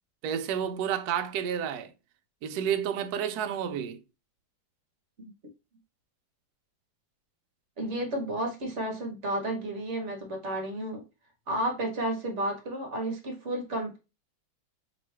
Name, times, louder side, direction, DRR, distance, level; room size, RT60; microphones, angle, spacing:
voice 1, 0.2-1.9 2.4-4.0, right 8 dB, 75° right, 0.9 m, -30 dB
voice 2, 7.8-11.0 11.5-14.0, right 1 dB, 50° right, 0.9 m, -32 dB
3.0 x 3.0 x 4.4 m
omnidirectional pair, 2.1 m